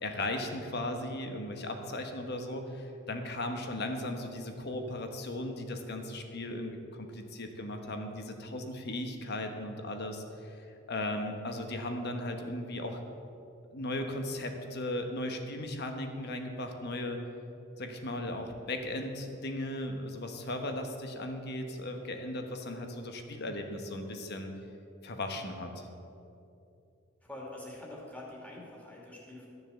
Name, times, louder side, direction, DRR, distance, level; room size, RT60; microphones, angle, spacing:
voice 1, 0.0-13.0 13.7-17.2 17.8-24.5 25.0-25.9, left 1 dB, 50° left, 5 dB, 1.2 m, -37 dB
voice 2, 27.2-29.5, left 1 dB, 5° left, -4 dB, 2.5 m, -45 dB
13.0 x 7.1 x 7.0 m, 2.8 s
head